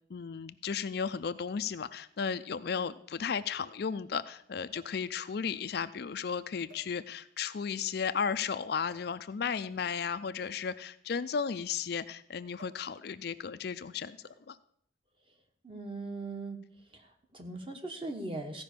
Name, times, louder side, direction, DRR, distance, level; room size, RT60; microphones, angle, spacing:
voice 1, 0.1-14.2 14.5-14.6, left 6 dB, 55° left, 12 dB, 0.4 m, -34 dB
sound 1, 1.0-1.1 2.2-2.3 2.5-2.6 4.7-5.1 5.9-6.1 6.7-7.4 8.8-9.2 10.3-11.9 12.6-12.9 13.2-13.5 14.2-14.6 15.6-15.8, right 4 dB, 85° right, 3.7 m, -60 dB
voice 2, 15.6-16.6 16.9-18.6, right 2 dB, 25° right, 5 dB, 1.2 m, -39 dB
15.0 x 5.2 x 6.7 m, 0.69 s
head